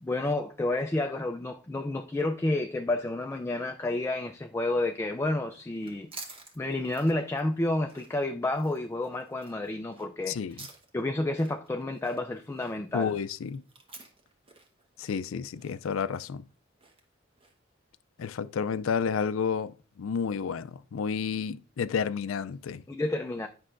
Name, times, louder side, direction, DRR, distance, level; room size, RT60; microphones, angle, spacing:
voice 1, 0.0-6.1 6.6-10.7 10.9-13.2 22.9-23.5, left 2 dB, 15° left, 0.3 m, -30 dB
sound 1, 5.5-17.7, right 3 dB, 30° right, 1.1 m, -51 dB
voice 2, 10.3-10.6 12.9-13.6 15.0-16.4 18.2-22.8, left 6 dB, 85° left, 0.4 m, -31 dB
9.7 x 5.5 x 2.5 m
head